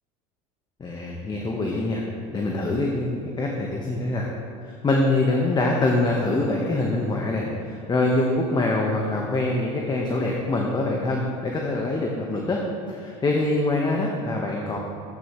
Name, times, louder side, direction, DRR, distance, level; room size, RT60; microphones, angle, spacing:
voice 1, 0.8-2.0 2.3-4.3 4.8-12.6 12.9-14.8, left 2 dB, 25° left, -1 dB, 1.2 m, -24 dB
13.0 x 8.7 x 3.1 m, 2.7 s
supercardioid pair, 100°, 18 cm